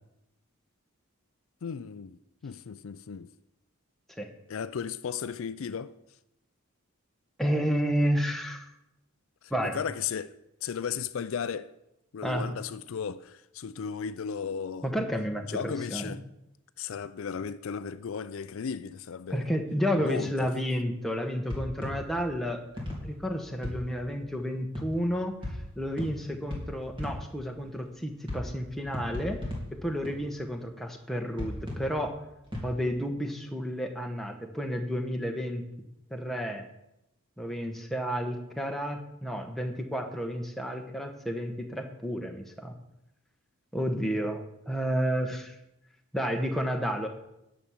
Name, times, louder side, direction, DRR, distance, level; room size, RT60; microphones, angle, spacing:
voice 1, 1.6-3.3 4.5-5.9 9.7-10.3 10.6-11.7 12.1-14.9 15.5-16.2 16.8-19.5 19.9-20.5, left 7 dB, 65° left, 0.4 m, -35 dB
voice 2, 7.4-8.6 9.5-9.8 12.2-12.5 14.8-16.1 19.3-22.6 22.9-29.4 29.7-32.2 32.6-35.6 36.1-36.7 37.4-42.7 43.7-45.6 46.1-47.1, equal, ahead, 1.1 m, -31 dB
sound 1, 21.5-24.3 24.7-27.7 28.3-30.6 31.2-33.0, left 1 dB, 20° right, 2.9 m, -38 dB
10.5 x 6.2 x 7.2 m
head